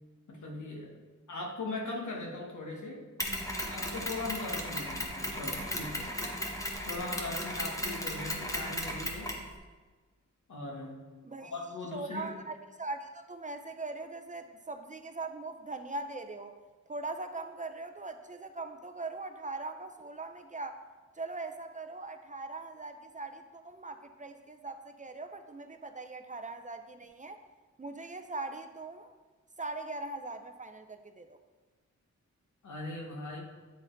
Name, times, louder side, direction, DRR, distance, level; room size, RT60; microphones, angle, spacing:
voice 1, 0.3-1.0 1.3-3.0 3.7-6.1 6.9-9.4 10.5-11.0 11.4-12.3 32.6-33.4, left 2 dB, 75° left, 0 dB, 1.2 m, -39 dB
Mechanisms, 3.2-9.5, equal, 10° left, 0.9 m, -36 dB
voice 2, 11.9-16.5 16.9-20.8 21.1-27.4 27.8-29.1 29.6-31.4, right 3 dB, 25° right, 6 dB, 0.4 m, -41 dB
8.5 x 4.1 x 3.8 m, 1.4 s
wide cardioid pair, 95°, 30 cm